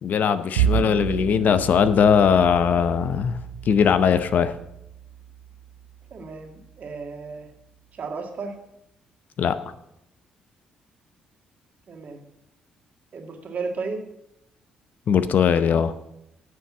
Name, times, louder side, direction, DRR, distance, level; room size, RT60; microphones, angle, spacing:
voice 1, 0.0-3.4 3.7-4.5 9.4-9.5 15.1-15.9, left 7 dB, 60° left, 12 dB, 0.7 m, -20 dB
Bowed string instrument, 0.6-7.0, right 9 dB, 85° right, 0.6 m, -31 dB
voice 2, 6.1-7.5 7.9-8.5 11.9-12.2 13.1-14.0, right 4 dB, 55° right, 3 dB, 1.9 m, -34 dB
8.8 x 6.7 x 7.2 m, 0.82 s
hypercardioid pair, 45°, 3 cm